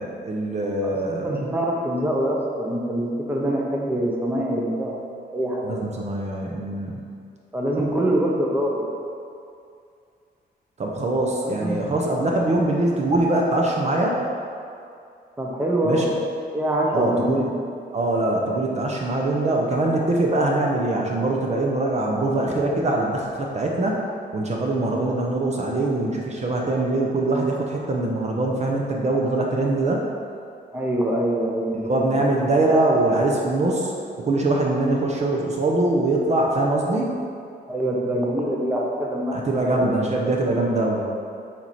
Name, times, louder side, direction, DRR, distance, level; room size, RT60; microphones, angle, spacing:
voice 1, 0.0-1.3 5.6-7.0 10.8-14.2 15.8-16.0 16.9-17.5 17.9-24.0 24.3-30.0 31.7-33.9 34.2-37.1 39.3-41.0, right 2 dB, 40° right, -1 dB, 0.7 m, -23 dB
voice 2, 0.8-5.0 5.3-5.7 7.5-8.8 11.5-11.8 15.4-16.1 16.5-17.5 30.7-32.2 37.7-39.3 39.7-39.9, right 1 dB, 10° right, -2 dB, 0.8 m, -24 dB
7.6 x 4.4 x 4.2 m, 2.4 s
wide cardioid pair, 150°, 18 cm